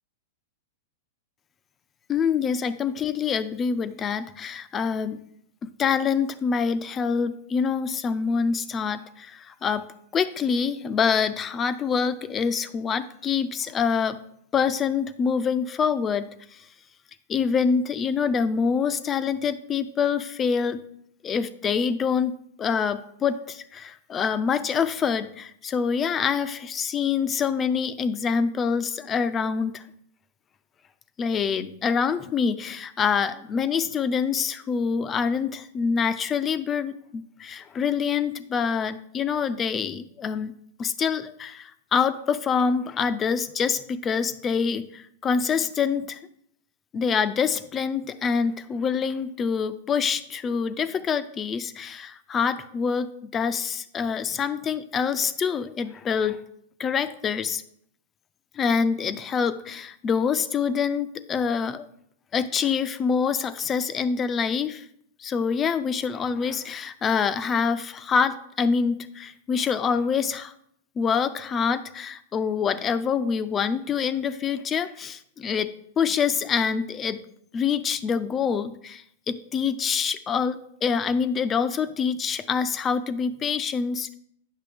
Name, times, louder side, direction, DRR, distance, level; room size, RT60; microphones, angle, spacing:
voice 1, 2.1-5.2 5.8-9.9 10.1-14.2 14.5-16.7 17.3-20.8 21.2-22.3 22.6-29.8 31.2-40.5 40.8-46.2 46.9-56.4 56.8-57.6 58.5-61.9 62.3-64.9 65.2-70.5 71.0-75.7 76.0-77.2 77.5-84.1, left 6 dB, 25° left, 13 dB, 0.4 m, -26 dB
8.3 x 5.9 x 3.4 m, 0.70 s
hypercardioid pair, 125°, 0 cm